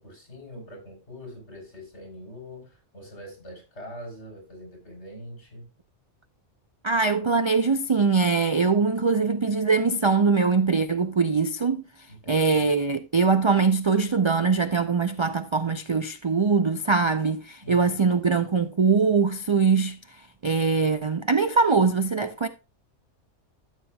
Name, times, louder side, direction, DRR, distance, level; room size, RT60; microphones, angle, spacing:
voice 1, 0.0-5.7 12.1-12.7 17.6-18.1, left 1 dB, 65° left, 4.1 m, -43 dB
voice 2, 6.8-11.8 12.3-20.0 20.4-22.5, right 4 dB, 50° right, 0.3 m, -22 dB
13.5 x 7.3 x 2.2 m
omnidirectional pair, 1.3 m